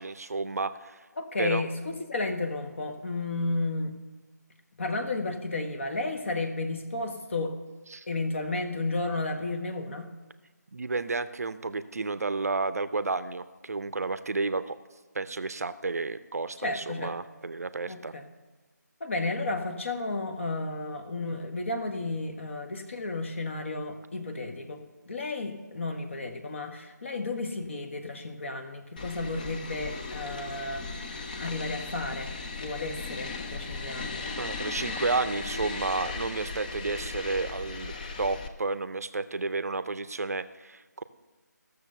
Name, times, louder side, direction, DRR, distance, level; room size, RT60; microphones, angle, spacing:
voice 1, 0.0-1.1 1.4-1.6 7.9-8.1 10.7-14.8 15.1-18.1 34.4-37.9 38.2-41.0, right 3 dB, 55° right, 13 dB, 0.6 m, -31 dB
voice 2, 1.2-1.7 2.0-3.9 4.8-7.6 8.1-10.1 16.6-17.1 17.9-18.3 19.0-31.0 31.4-34.3, left 2 dB, 45° left, 6 dB, 1.3 m, -33 dB
sound 1, 29.0-38.5, left 4 dB, 25° left, 0.7 m, -37 dB
15.0 x 6.9 x 6.7 m, 1.2 s
figure-of-eight pair, 155°, 10 cm